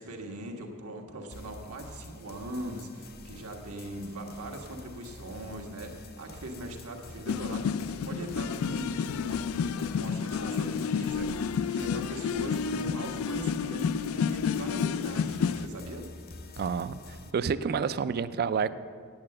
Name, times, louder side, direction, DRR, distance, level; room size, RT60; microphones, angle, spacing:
voice 1, 0.0-16.1, right 1 dB, 80° right, 2 dB, 1.4 m, -40 dB
sound 1, 1.3-17.3, left 3 dB, 45° left, 0.7 m, -48 dB
sound 2, 7.2-15.7, left 6 dB, 70° left, 0.3 m, -30 dB
voice 2, 16.6-17.0 17.3-18.7, right 6 dB, 45° right, 15 dB, 0.3 m, -28 dB
8.8 x 8.7 x 7.5 m, 2.1 s
head